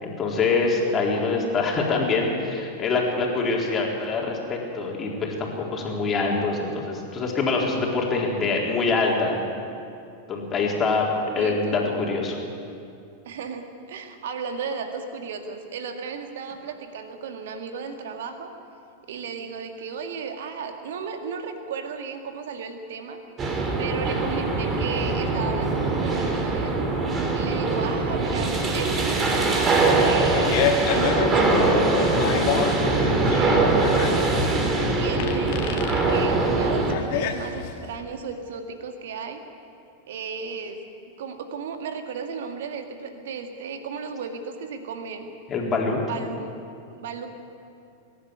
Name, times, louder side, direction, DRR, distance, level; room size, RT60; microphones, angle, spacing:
voice 1, 0.0-9.5 10.3-11.1 11.3-12.4 45.5-46.0, left 3 dB, 25° left, -1 dB, 3.9 m, -24 dB
voice 2, 11.4-11.9 13.3-18.5 19.0-23.2 23.8-26.8 27.3-34.3 34.9-35.8 36.1-39.4 40.1-40.8 41.2-45.3 46.0-46.5 46.9-47.3, right 5 dB, 55° right, 6 dB, 2.0 m, -35 dB
sound 1, 23.4-37.0, right 3 dB, 25° right, 2.7 m, -22 dB
Fart, 30.2-37.9, left 8 dB, 50° left, 1.7 m, -28 dB
23.5 x 11.0 x 9.9 m, 2.6 s
figure-of-eight pair, 90°, 0 cm